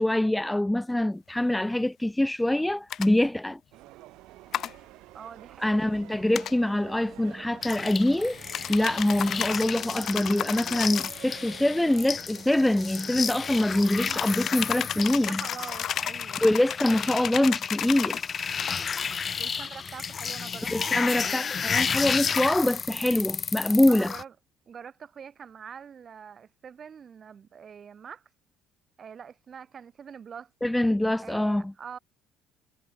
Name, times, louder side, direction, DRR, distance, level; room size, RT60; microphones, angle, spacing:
voice 1, 0.0-3.6 5.6-8.4 8.7-15.4 16.4-18.2 20.7-24.1 30.6-31.7, left 1 dB, 5° left, 0.4 m, -24 dB
sound 1, 2.9-3.1 4.5-4.7 6.3-6.5 8.5-11.2 14.1-18.2 18.6-18.8, left 10 dB, 55° left, 1.1 m, -33 dB
sound 2, 3.7-14.2, right 18 dB, 80° right, 1.4 m, -48 dB
voice 2, 5.1-5.9 14.0-14.2 14.8-16.4 19.4-21.5 23.9-24.3 24.7-28.2 29.0-30.5 31.2-32.0, right 7 dB, 40° right, 1.8 m, -44 dB
sound 3, 7.6-24.2, left 6 dB, 35° left, 1.8 m, -32 dB
cardioid pair, 105°, 0 cm